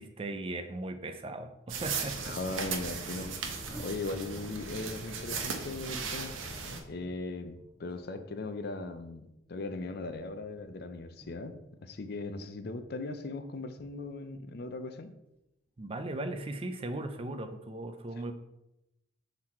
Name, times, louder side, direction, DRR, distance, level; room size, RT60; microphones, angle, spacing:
voice 1, 0.0-2.4 2.7-2.9 15.8-18.3, right 2 dB, 30° right, 8 dB, 0.4 m, -38 dB
sound 1, 1.7-6.8, right 5 dB, 85° right, 0.9 m, -37 dB
voice 2, 2.2-3.3 3.8-6.3 6.9-15.1, left 2 dB, 55° left, 9 dB, 0.5 m, -38 dB
sound 2, 3.4-4.2 4.8-8.1 8.4-12.2 12.5-14.8 15.3-16.0 16.8-17.0, equal, 10° left, 1.7 m, -56 dB
6.2 x 4.0 x 4.3 m, 0.91 s
head